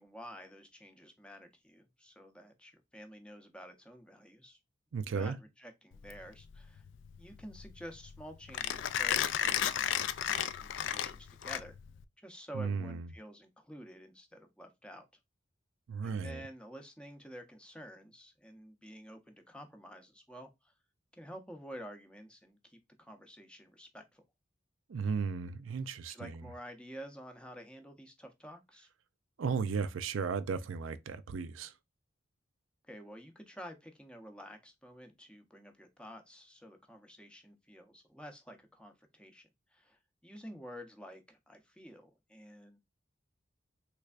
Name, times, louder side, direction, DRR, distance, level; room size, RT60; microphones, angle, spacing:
voice 1, 0.0-4.6 5.0-6.8 7.2-11.8 12.2-15.1 16.0-20.7 21.1-24.2 26.1-28.9 32.9-42.8, equal, 5° left, 0.6 m, -50 dB
voice 2, 4.9-5.4 12.5-13.1 15.9-16.4 24.9-26.5 29.4-31.7, right 5 dB, 90° right, 0.4 m, -35 dB
Mechanisms, 5.9-12.0, left 10 dB, 70° left, 0.3 m, -34 dB
3.3 x 3.2 x 2.4 m
head